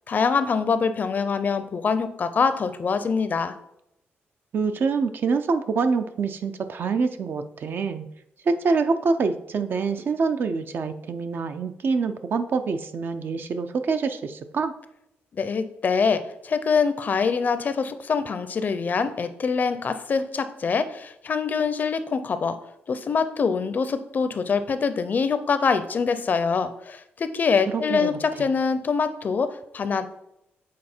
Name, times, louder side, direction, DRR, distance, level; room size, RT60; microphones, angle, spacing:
voice 1, 0.1-3.5 15.3-22.6 22.9-30.1, left 5 dB, 45° left, 11 dB, 0.5 m, -24 dB
voice 2, 4.5-8.1 8.4-14.7 27.7-28.1, right 4 dB, 55° right, 9 dB, 0.5 m, -25 dB
7.6 x 4.1 x 4.4 m, 0.81 s
cardioid pair, 125°, 4 cm